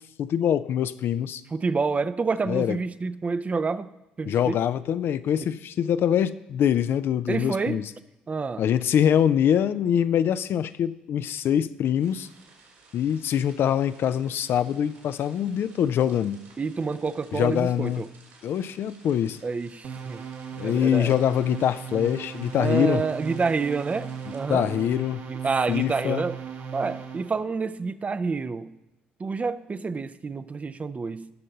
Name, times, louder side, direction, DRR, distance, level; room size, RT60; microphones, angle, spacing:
voice 1, 0.2-1.4 2.5-2.8 4.3-7.9 8.6-12.3 12.9-16.4 17.3-18.0 18.4-19.4 20.6-23.0 24.5-25.2 25.7-26.2, left 9 dB, 55° left, 13 dB, 0.4 m, -24 dB
voice 2, 1.5-3.9 4.2-4.6 5.4-5.5 7.3-7.8 8.3-8.6 16.6-18.1 19.4-20.2 20.6-21.1 22.6-24.7 25.3-26.4 26.7-28.7 29.2-31.3, right 4 dB, 30° right, 14 dB, 0.5 m, -28 dB
sound 1, 12.0-24.4, right 3 dB, 70° right, 3.3 m, -55 dB
sound 2, 19.8-27.4, right 7 dB, 55° right, 1.2 m, -37 dB
17.5 x 6.5 x 4.0 m, 0.92 s
hypercardioid pair, 50°, 5 cm